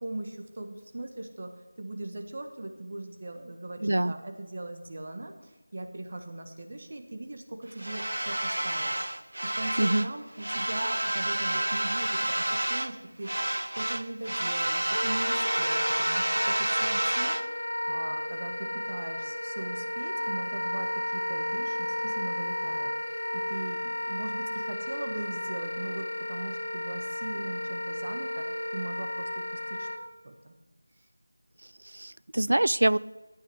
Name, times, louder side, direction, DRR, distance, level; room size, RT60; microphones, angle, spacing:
voice 1, 0.0-13.3 13.6-23.8 24.1-29.9 30.2-30.5, right 2 dB, 30° right, 4 dB, 1.4 m, -40 dB
voice 2, 3.8-4.1 9.8-10.1 31.9-33.0, right 1 dB, 65° right, 19 dB, 0.4 m, -24 dB
sound 1, 7.8-10.1 10.4-13.0 13.2-17.5, right 1 dB, 80° right, 0.7 m, -29 dB
Wind instrument woodwind instrument, 14.9-30.0, left 1 dB, 75° left, 1.8 m, -33 dB
13.0 x 9.0 x 7.8 m, 1.1 s
figure-of-eight pair, 175°, 0 cm